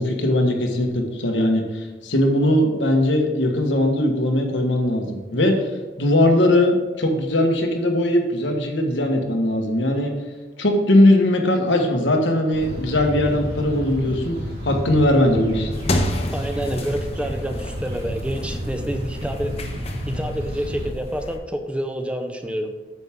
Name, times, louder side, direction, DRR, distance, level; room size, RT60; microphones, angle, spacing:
voice 1, 0.0-5.6 6.0-10.1 10.6-14.4 14.6-15.7, left 1 dB, 85° left, 2 dB, 1.4 m, -19 dB
sound 1, 12.5-20.9, equal, 60° right, 3.0 m, -31 dB
sound 2, 15.7-21.4, left 1 dB, 35° left, 0.8 m, -30 dB
voice 2, 16.3-19.5 20.1-22.7, right 1 dB, 5° right, 6 dB, 0.6 m, -28 dB
9.1 x 7.2 x 3.6 m, 1.2 s
head